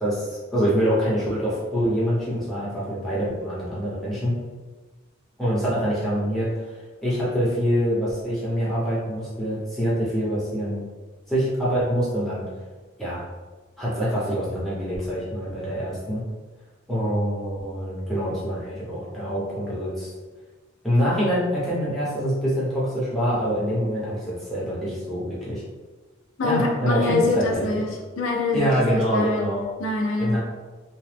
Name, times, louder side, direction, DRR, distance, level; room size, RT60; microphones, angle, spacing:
voice 1, 0.0-4.4 5.4-6.5 7.0-10.9 11.3-12.4 13.0-13.2 13.8-16.2 16.9-20.1 20.8-25.6 26.4-27.8 28.5-29.6 30.2-30.4, equal, ahead, -9 dB, 0.8 m, -25 dB
voice 2, 26.4-29.5 29.8-30.4, left 2 dB, 70° left, 0 dB, 0.5 m, -25 dB
3.0 x 2.1 x 3.3 m, 1.3 s
head